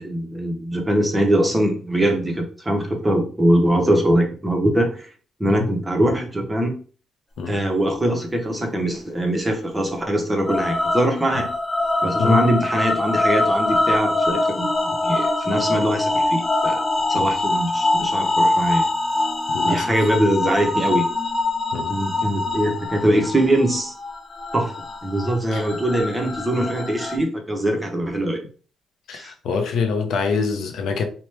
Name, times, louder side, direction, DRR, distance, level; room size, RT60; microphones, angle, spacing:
voice 1, 0.0-5.1 5.4-6.8 7.5-11.5 12.0-14.7 15.0-16.8 17.1-18.9 19.6-21.1 21.9-23.9 24.5-24.7 25.0-28.4 29.1-29.3, right 1 dB, 10° right, 0.7 m, -22 dB
sound 1, 10.5-27.2, left 2 dB, 20° left, 0.4 m, -23 dB
voice 2, 19.5-19.8 21.7-21.9 25.5-25.6 29.1-31.0, left 5 dB, 75° left, 0.5 m, -24 dB
2.9 x 2.1 x 3.1 m
cardioid pair, 110°, 0 cm